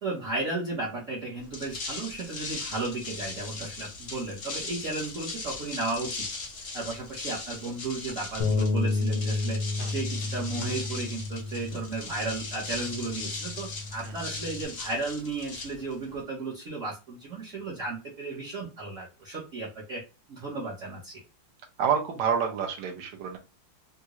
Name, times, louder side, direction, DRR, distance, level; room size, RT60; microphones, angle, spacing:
voice 1, 0.0-6.3 6.7-9.6 9.9-20.0 20.3-21.2, right 3 dB, 50° right, -5 dB, 1.0 m, -34 dB
sound 1, 1.4-16.2, left 3 dB, 55° left, 0.8 m, -39 dB
Bass guitar, 8.4-14.7, left 3 dB, 80° left, 1.3 m, -31 dB
voice 2, 21.8-23.4, right 7 dB, 70° right, 3 dB, 1.3 m, -28 dB
3.6 x 2.2 x 2.9 m, 0.29 s
omnidirectional pair, 2.1 m